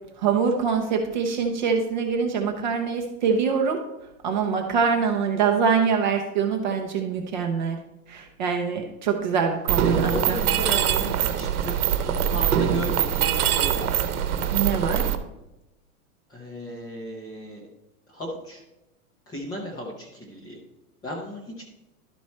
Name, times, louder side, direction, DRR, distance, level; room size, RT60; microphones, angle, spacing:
voice 1, 0.2-3.8 4.2-7.8 8.1-10.4 14.5-15.1, right 6 dB, 35° right, 4 dB, 0.6 m, -24 dB
Mechanisms, 9.7-15.1, right 9 dB, 85° right, 0.9 m, -23 dB
voice 2, 9.8-13.9 16.3-17.7 18.1-18.6 19.3-20.6 21.0-21.6, equal, 10° left, -3 dB, 0.6 m, -35 dB
11.5 x 4.6 x 4.2 m, 0.95 s
supercardioid pair, 175°, 44 cm